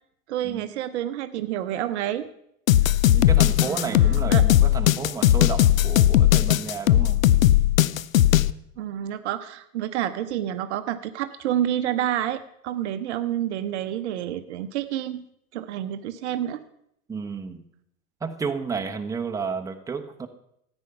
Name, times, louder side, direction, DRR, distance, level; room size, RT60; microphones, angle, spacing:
voice 1, 0.3-2.3 2.9-3.0 3.6-4.5 8.8-15.2 15.5-16.6, right 11 dB, 50° right, 11 dB, 0.8 m, -29 dB
sound 1, 2.7-8.5, left 13 dB, 65° left, 0.5 m, -18 dB
voice 2, 3.1-7.2 17.1-17.6 18.2-20.3, right 5 dB, 10° right, 5 dB, 0.9 m, -32 dB
14.0 x 8.9 x 5.7 m, 0.75 s
figure-of-eight pair, 85°, 43 cm